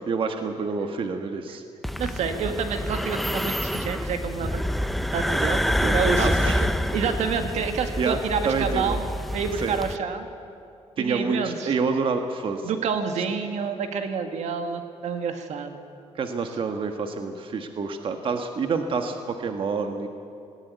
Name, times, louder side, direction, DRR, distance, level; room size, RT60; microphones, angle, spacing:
voice 1, 0.1-1.6 5.8-6.6 8.0-8.2 8.4-9.0 9.6-9.7 11.0-12.6 16.1-20.1, right 5 dB, 50° right, 6 dB, 1.4 m, -27 dB
sound 1, 1.8-10.0, equal, ahead, 0.7 m, -27 dB
voice 2, 2.0-4.6 5.1-5.6 5.9-6.3 6.6-9.1 9.3-10.3 11.0-11.8 12.6-15.8, right 6 dB, 75° right, 6 dB, 1.9 m, -28 dB
18.5 x 18.0 x 9.4 m, 2.5 s
cardioid pair, 130°, 12 cm